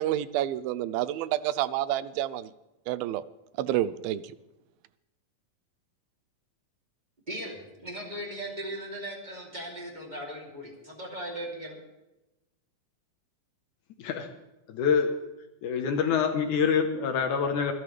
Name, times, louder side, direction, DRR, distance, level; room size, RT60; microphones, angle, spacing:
voice 1, 0.0-2.5 2.9-3.2 3.6-4.2, right 13 dB, 85° right, 16 dB, 2.4 m, -29 dB
voice 2, 7.3-11.8, right 1 dB, 15° right, -1 dB, 2.5 m, -38 dB
voice 3, 14.7-15.1 15.6-17.7, left 6 dB, 70° left, 6 dB, 2.2 m, -26 dB
25.5 x 11.0 x 3.3 m, 0.98 s
omnidirectional pair, 4.1 m